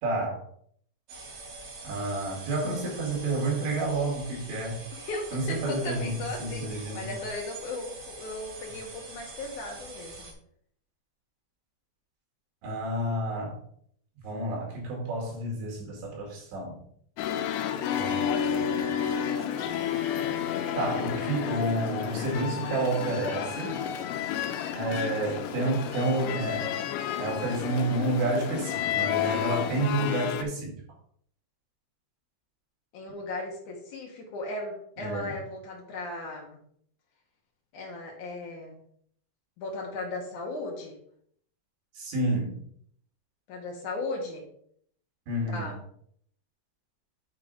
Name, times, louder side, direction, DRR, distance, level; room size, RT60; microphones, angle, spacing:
voice 1, 0.0-0.5 1.8-4.8 5.3-6.1 6.4-7.1 12.6-13.6 14.2-16.8 17.9-19.0 19.6-19.7 20.8-23.8 24.7-26.7 27.2-30.8 35.0-35.4 41.9-42.6 45.3-45.7, right 2 dB, 80° right, -1 dB, 4.9 m, -30 dB
sound 1, 1.1-10.3, right 3 dB, 55° right, 2.4 m, -44 dB
voice 2, 4.9-10.3 32.9-36.6 37.7-38.8 39.6-41.0 43.5-44.5 45.5-45.8, left 2 dB, 65° left, 0 dB, 2.0 m, -36 dB
sound 2, 17.2-30.4, left 9 dB, 80° left, 2.7 m, -31 dB
8.9 x 3.8 x 5.3 m, 0.64 s
omnidirectional pair, 5.1 m